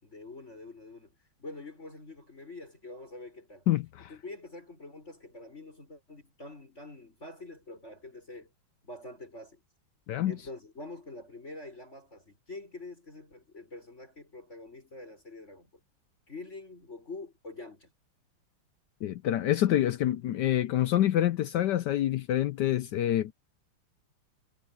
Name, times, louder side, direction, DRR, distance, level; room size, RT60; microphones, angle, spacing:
voice 1, 0.0-1.1 1.4-3.6 4.1-8.5 8.8-9.6 10.2-15.7 16.3-17.9, left 2 dB, 30° left, 6.4 m, -45 dB
voice 2, 3.7-4.1 10.1-10.4 19.0-23.3, left 12 dB, 75° left, 0.9 m, -27 dB
omnidirectional pair, 2.4 m